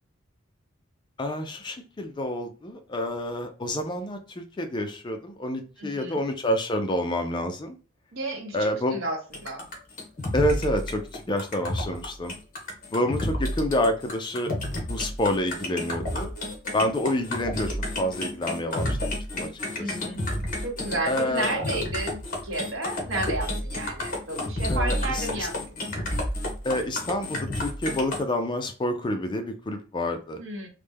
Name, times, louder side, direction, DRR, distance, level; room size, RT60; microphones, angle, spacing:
voice 1, 1.2-7.7 8.5-9.0 10.3-12.3 12.9-14.5 14.9-16.3 16.7-20.2 21.1-21.7 24.7-25.5 26.6-30.4, left 1 dB, 20° left, 6 dB, 0.3 m, -28 dB
voice 2, 5.8-6.2 8.1-9.6 16.6-16.7 19.8-20.3 20.6-25.6 30.4-30.7, right 2 dB, 65° right, 2 dB, 0.9 m, -32 dB
sound 1, 9.3-28.2, left 1 dB, 40° left, 1.0 m, -30 dB
3.1 x 2.1 x 3.3 m, 0.36 s
head